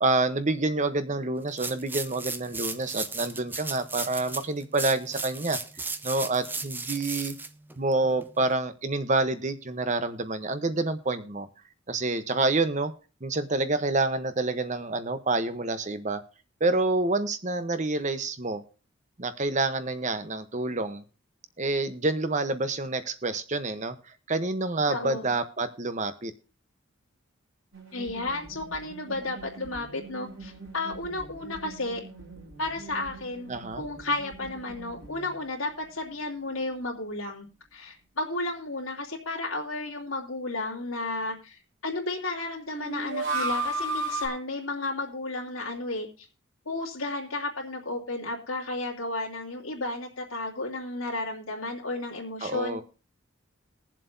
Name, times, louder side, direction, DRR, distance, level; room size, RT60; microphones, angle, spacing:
voice 1, 0.0-5.6 6.0-7.4 7.8-11.5 11.9-12.9 13.2-16.2 16.6-18.6 19.2-21.0 21.6-24.0 24.3-26.3 33.5-33.8 52.4-52.8, right 2 dB, 35° right, 11 dB, 0.9 m, -28 dB
sound 1, 1.5-8.5, right 3 dB, 10° right, 0.5 m, -35 dB
voice 2, 24.9-25.3 27.9-32.0 32.6-33.5 33.8-37.5 37.7-46.3 46.6-52.8, left 2 dB, 85° left, -2 dB, 2.8 m, -33 dB
sound 2, 27.7-35.5 35.8-35.9 42.7-44.3, right 2 dB, 65° right, 3.4 m, -36 dB
21.5 x 7.5 x 2.7 m, 0.35 s
head